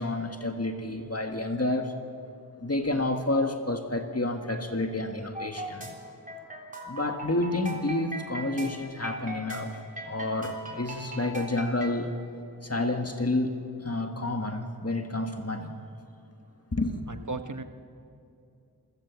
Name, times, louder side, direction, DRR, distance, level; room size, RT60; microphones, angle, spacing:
voice 1, 0.0-1.9 2.6-5.9 6.9-9.7 10.0-12.1 12.6-15.7 16.7-17.0, left 2 dB, 40° left, 5 dB, 1.6 m, -29 dB
sound 1, 5.3-11.9, right 1 dB, 20° right, 3.3 m, -39 dB
voice 2, 17.1-17.6, right 3 dB, 50° right, 8 dB, 1.2 m, -35 dB
27.5 x 16.0 x 7.2 m, 2.7 s
wide cardioid pair, 45°, 38 cm